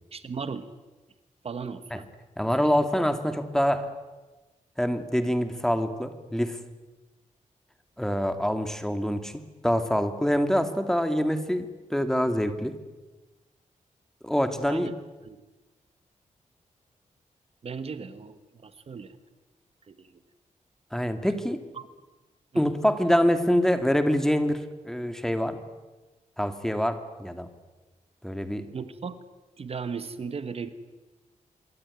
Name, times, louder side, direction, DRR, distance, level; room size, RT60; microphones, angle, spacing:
voice 1, 0.1-0.7 1.4-2.0 2.6-2.7 14.7-14.9 15.2-15.4 17.6-19.1 19.9-20.1 21.8-21.9 22.5-22.6 28.7-29.2 29.6-30.7, right 5 dB, 50° right, 11 dB, 1.4 m, -36 dB
voice 2, 2.4-3.9 4.8-6.6 8.0-12.8 14.2-14.9 20.9-21.6 22.5-25.6 26.4-27.5 28.2-28.7, equal, 5° left, 8 dB, 2.1 m, -25 dB
26.0 x 23.5 x 9.7 m, 1.2 s
wide cardioid pair, 160°, 13 cm